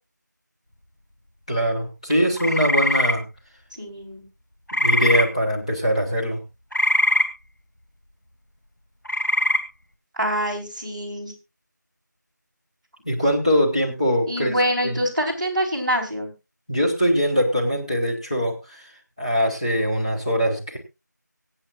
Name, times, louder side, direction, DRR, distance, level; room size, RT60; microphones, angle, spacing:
voice 1, 1.5-3.2 4.7-6.4 13.0-14.5 14.8-15.0 16.7-18.8 19.2-20.8, equal, 20° left, -3 dB, 1.9 m, -22 dB
sound 1, 2.4-3.1 4.7-5.2 6.7-7.3 9.1-9.6, left 1 dB, 70° left, 2.7 m, -21 dB
voice 2, 3.7-4.2 10.2-11.3 14.3-16.3, equal, 25° right, -5 dB, 3.5 m, -25 dB
25.0 x 8.3 x 2.5 m, 0.26 s
figure-of-eight pair, 180°, 10 cm